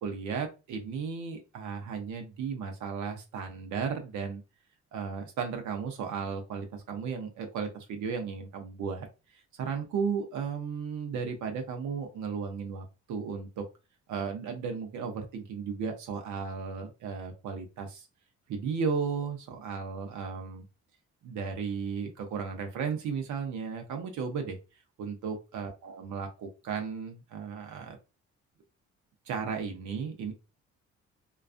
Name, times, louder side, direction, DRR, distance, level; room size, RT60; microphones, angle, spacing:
voice 1, 0.0-4.4 4.9-9.1 9.3-13.6 14.1-18.1 18.5-20.6 21.2-24.6 25.0-28.0 29.3-30.3, right 6 dB, 75° right, 4 dB, 0.7 m, -35 dB
2.3 x 2.3 x 2.4 m, 0.28 s
cardioid pair, 90°, 30 cm